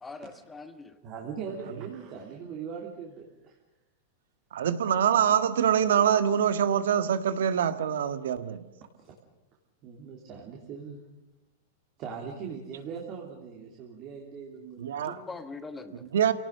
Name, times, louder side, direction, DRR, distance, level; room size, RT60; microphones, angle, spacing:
voice 1, 0.0-1.0 15.0-16.1, left 3 dB, 10° left, 9 dB, 1.3 m, -42 dB
voice 2, 1.0-3.6 9.0-9.1 9.8-11.1 12.0-15.1, right 6 dB, 35° right, -1 dB, 3.3 m, -40 dB
voice 3, 4.5-8.7 14.8-15.2 16.1-16.3, right 8 dB, 90° right, 11 dB, 1.6 m, -24 dB
27.5 x 18.0 x 6.7 m, 0.96 s
supercardioid pair, 160°, 0 cm